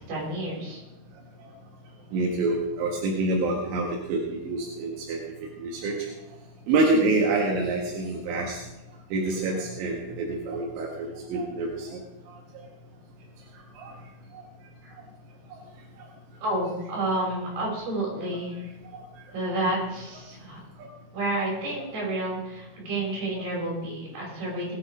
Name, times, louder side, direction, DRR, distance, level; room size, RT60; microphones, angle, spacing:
voice 1, 0.1-0.8 14.8-15.0 16.4-18.6 19.3-20.6 21.1-24.7, right 1 dB, 55° right, -3 dB, 8.0 m, -30 dB
voice 2, 2.1-5.2 5.6-5.9 6.7-8.6 9.1-12.0 13.8-13.9 14.3-14.4 18.2-18.4 18.9-19.0, right 2 dB, 85° right, -1 dB, 4.3 m, -27 dB
20.0 x 11.0 x 5.0 m, 0.97 s
omnidirectional pair, 5.4 m